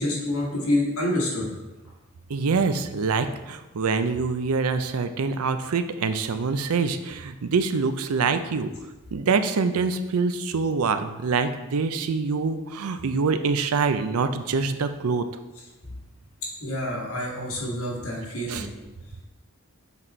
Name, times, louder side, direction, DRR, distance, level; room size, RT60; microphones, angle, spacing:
voice 1, 0.0-1.5 16.6-18.7, left 1 dB, 75° left, -3 dB, 1.9 m, -27 dB
voice 2, 2.3-8.7 9.1-15.3 18.5-18.7, right 4 dB, 85° right, 10 dB, 0.5 m, -25 dB
7.0 x 4.2 x 4.3 m, 1.1 s
head